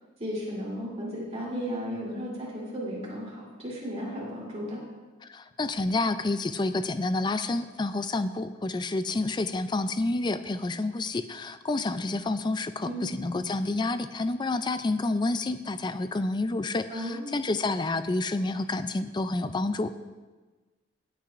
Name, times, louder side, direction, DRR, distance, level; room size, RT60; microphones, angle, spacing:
voice 1, 0.2-4.8 12.8-13.1 16.9-17.3, equal, 30° right, -5 dB, 3.1 m, -34 dB
voice 2, 5.3-19.9, left 2 dB, 20° left, 11 dB, 0.4 m, -29 dB
18.0 x 8.6 x 2.5 m, 1.3 s
head